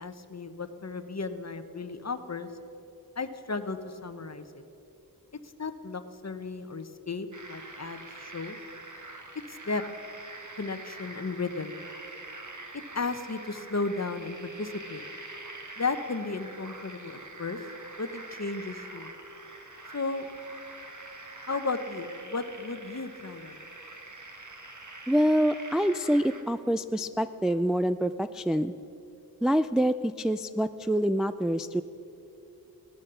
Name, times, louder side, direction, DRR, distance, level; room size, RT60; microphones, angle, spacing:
voice 1, 0.0-2.5 3.2-4.4 5.6-8.6 9.5-9.8 10.6-11.9 12.7-15.1 15.8-17.6 18.0-19.1 19.9-20.3 21.5-23.7, left 3 dB, 45° left, 9 dB, 1.0 m, -34 dB
sound 1, 7.3-26.4, right 2 dB, 50° right, 1.7 m, -45 dB
voice 2, 25.1-28.7 29.4-31.8, equal, ahead, 11 dB, 0.3 m, -26 dB
17.0 x 12.5 x 6.9 m, 2.8 s
wide cardioid pair, 75°, 38 cm